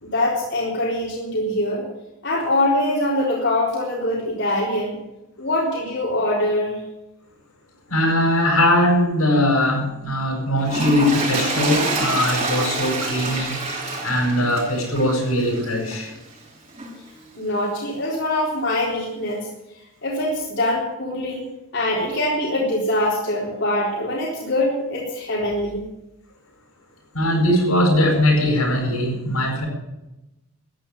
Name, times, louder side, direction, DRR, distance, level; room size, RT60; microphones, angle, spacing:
voice 1, 0.0-1.8 2.2-5.0 5.4-6.8 17.4-19.5 20.0-21.4 21.7-25.9, left 1 dB, 55° left, -4 dB, 3.9 m, -23 dB
voice 2, 7.9-13.5 14.0-16.1 27.1-29.7, left 1 dB, 90° left, 0 dB, 7.9 m, -20 dB
Toilet flush, 10.6-16.1 16.8-16.9, right 2 dB, 30° right, 5.9 m, -27 dB
14.0 x 10.5 x 8.9 m, 0.96 s
head